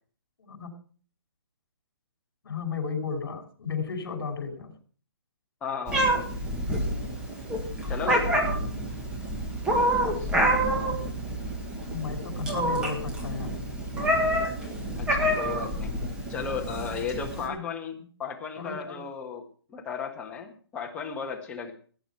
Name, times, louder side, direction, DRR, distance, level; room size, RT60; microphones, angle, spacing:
voice 1, 0.4-0.7 2.4-4.7 11.9-13.6 17.4-17.6 18.6-19.0, left 5 dB, 65° left, 5 dB, 5.5 m, -34 dB
voice 2, 5.6-6.3 7.9-8.3 10.1-10.3 15.0-15.9 16.3-21.7, left 6 dB, 10° left, 1 dB, 1.6 m, -35 dB
Meow, 5.9-17.5, right 1 dB, 5° right, 1.9 m, -28 dB
17.5 x 9.3 x 4.5 m, 0.43 s
hypercardioid pair, 165°, 13 cm